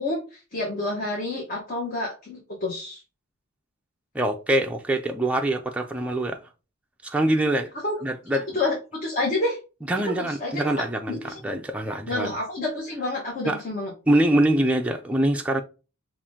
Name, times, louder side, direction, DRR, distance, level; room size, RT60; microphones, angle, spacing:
voice 1, 0.0-3.0 7.8-7.9 8.5-8.7 9.0-9.6 10.2-10.7 11.1-11.4 12.1-13.9, left 2 dB, 40° left, 1.2 m, -28 dB
voice 2, 4.1-6.4 7.0-7.7 8.0-8.5 9.9-12.4 13.4-13.6 14.1-15.6, right 1 dB, 5° right, 0.4 m, -24 dB
5.8 x 2.5 x 3.6 m
head